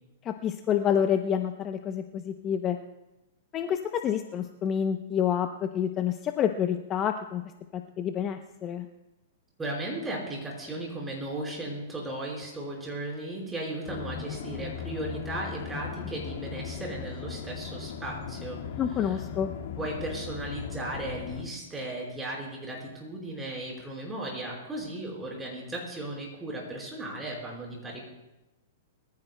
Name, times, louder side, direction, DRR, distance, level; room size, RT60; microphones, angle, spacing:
voice 1, 0.3-2.8 3.5-7.4 8.0-8.9 18.8-19.5, left 8 dB, 25° left, 6 dB, 0.7 m, -28 dB
voice 2, 9.6-18.6 18.9-19.2 19.8-28.0, right 1 dB, 10° right, -3 dB, 4.6 m, -36 dB
sound 1, 13.9-21.4, left 6 dB, 65° left, 1.9 m, -38 dB
23.5 x 14.5 x 2.2 m, 0.97 s
hypercardioid pair, 145°, 0 cm